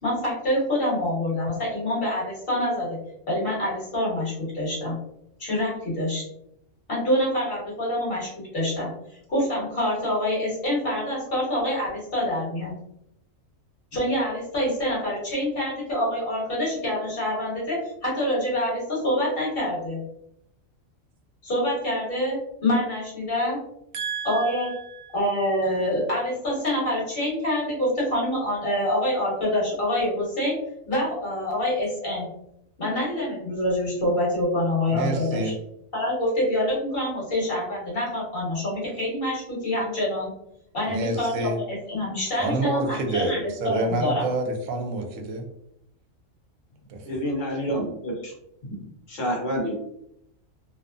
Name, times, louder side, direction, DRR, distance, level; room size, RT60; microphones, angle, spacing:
voice 1, 0.0-3.0 3.3-5.0 5.4-6.2 6.9-8.9 9.3-12.7 13.9-17.8 18.0-20.0 21.4-23.6 24.2-24.7 25.1-30.6 30.9-32.3 32.8-35.5 35.9-40.3 40.7-44.2, left 1 dB, 45° left, -5 dB, 1.4 m, -26 dB
voice 2, 23.9-25.1 34.9-35.5 40.9-41.6 42.4-45.5 46.9-47.2, right 2 dB, 80° right, 4 dB, 1.0 m, -28 dB
voice 3, 47.0-48.3 48.7-48.8 49.1-49.7, equal, 70° left, -2 dB, 1.2 m, -28 dB
2.8 x 2.0 x 2.5 m, 0.77 s
omnidirectional pair, 1.4 m